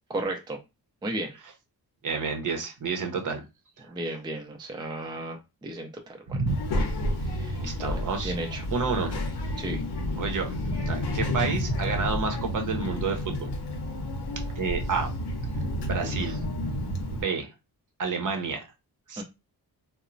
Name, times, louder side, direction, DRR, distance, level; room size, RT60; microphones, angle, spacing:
voice 1, 0.1-0.6 1.0-1.3 3.8-6.4 6.7-6.8 7.2-8.6 9.6-9.8 16.0-16.4 19.2-19.3, right 2 dB, 10° right, 3 dB, 0.4 m, -35 dB
voice 2, 2.0-3.4 3.8-3.9 6.3-6.5 7.6-8.3 8.7-9.2 10.1-10.6 10.8-13.5 14.6-15.1 15.9-16.4 17.1-17.5 18.0-18.7 19.1-19.2, right 4 dB, 50° right, 4 dB, 0.7 m, -30 dB
Child speech kid speaking, 6.5-17.2, left 1 dB, 75° left, 0.7 m, -30 dB
2.9 x 2.0 x 2.5 m, 0.26 s
cardioid pair, 85°, 40 cm